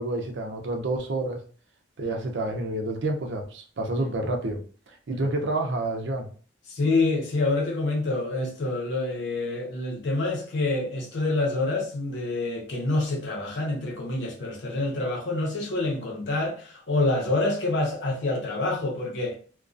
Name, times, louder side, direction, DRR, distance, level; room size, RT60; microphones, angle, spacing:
voice 1, 0.0-1.4 2.0-6.3, right 2 dB, 65° right, 0.5 m, -29 dB
voice 2, 6.7-19.4, left 2 dB, 70° left, 0.7 m, -27 dB
2.3 x 2.2 x 2.5 m
head